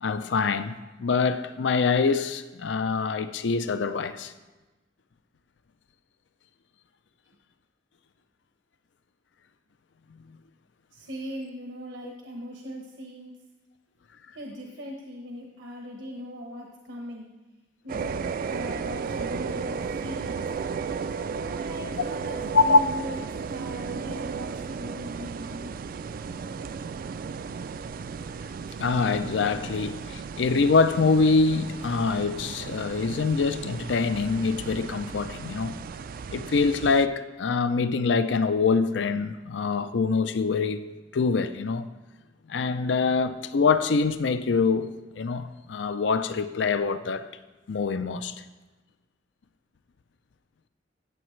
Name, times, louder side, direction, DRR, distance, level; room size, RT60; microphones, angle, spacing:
voice 1, 0.0-4.3 12.0-12.1 22.5-22.8 28.8-35.8 36.3-40.8 41.1-41.9 42.5-44.9 45.1-47.3 47.7-48.4, left 4 dB, 70° left, 0.5 m, -24 dB
voice 2, 10.9-13.3 14.3-17.3 17.8-20.4 21.3-23.2 23.5-25.7, equal, 80° right, 1.0 m, -39 dB
sound 1, 17.9-37.1, right 5 dB, 50° right, 0.3 m, -35 dB
15.0 x 7.9 x 3.2 m
head